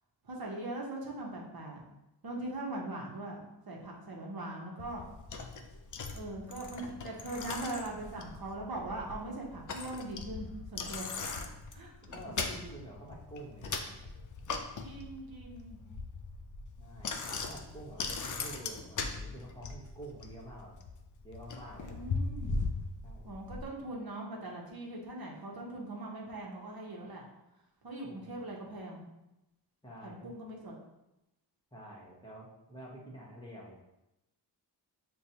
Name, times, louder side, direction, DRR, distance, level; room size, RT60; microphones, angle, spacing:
voice 1, 0.2-1.8 2.2-5.0 6.1-11.1 11.7-12.4 14.8-15.8 21.9-22.5 23.2-27.2 27.8-29.0 30.0-30.7, right 2 dB, 55° right, -2 dB, 0.9 m, -41 dB
Bicycle, 4.8-23.6, left 4 dB, 45° left, 0.4 m, -40 dB
voice 2, 11.2-11.6 12.0-14.0 16.8-20.8 21.2-22.0 23.0-23.5 28.0-28.3 29.8-30.3 31.7-33.8, right 1 dB, 10° left, -5 dB, 1.0 m, -49 dB
6.5 x 2.3 x 2.8 m, 0.91 s
wide cardioid pair, 110°, 44 cm